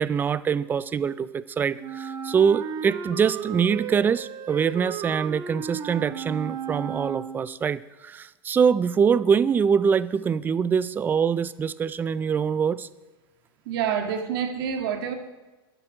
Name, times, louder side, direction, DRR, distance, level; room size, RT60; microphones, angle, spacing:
voice 1, 0.0-12.9, right 6 dB, 15° right, 18 dB, 0.3 m, -24 dB
Wind instrument woodwind instrument, 1.8-7.6, right 8 dB, 30° right, 1.1 m, -34 dB
voice 2, 13.7-15.1, right 8 dB, 65° right, 5 dB, 1.9 m, -27 dB
12.5 x 10.5 x 5.0 m, 1.1 s
supercardioid pair, 140°, 13 cm